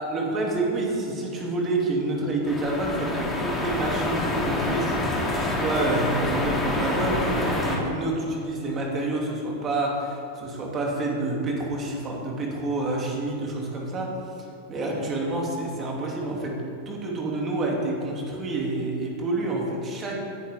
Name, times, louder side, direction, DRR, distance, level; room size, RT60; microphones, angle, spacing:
voice 1, 0.0-14.1 14.7-16.6 16.8-20.2, right 2 dB, 25° right, -1 dB, 3.0 m, -28 dB
sound 1, 2.5-7.8, left 1 dB, 10° left, 2.8 m, -27 dB
17.5 x 10.5 x 3.8 m, 2.5 s
figure-of-eight pair, 90°, 0 cm